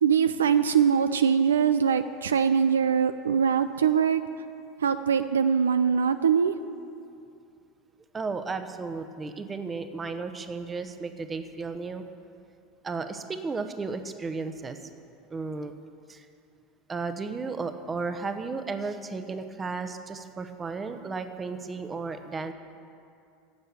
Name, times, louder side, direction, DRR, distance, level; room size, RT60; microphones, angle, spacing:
voice 1, 0.0-4.2 4.8-6.5, right 7 dB, 70° right, 11 dB, 0.3 m, -22 dB
voice 2, 8.1-12.0 12.8-14.8 15.3-15.7 16.1-16.3 16.9-22.5, right 4 dB, 20° right, 8 dB, 0.9 m, -34 dB
10.5 x 7.9 x 9.4 m, 2.5 s
figure-of-eight pair, 75°, 0 cm